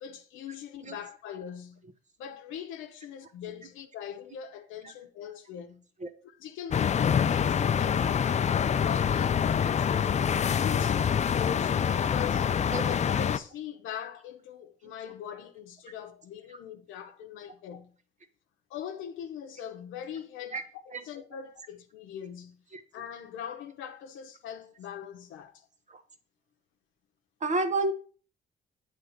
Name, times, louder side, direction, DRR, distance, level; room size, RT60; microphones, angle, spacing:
voice 1, 0.0-1.9 2.2-5.8 6.2-8.4 8.8-12.5 12.8-17.9 18.7-22.6 22.9-25.7, left 9 dB, 85° left, 0.8 m, -41 dB
sound 1, 6.7-13.4, left 7 dB, 35° left, 0.4 m, -26 dB
voice 2, 27.4-27.9, right 2 dB, 35° right, 0.9 m, -29 dB
7.7 x 3.5 x 6.4 m
cardioid pair, 90°, 20 cm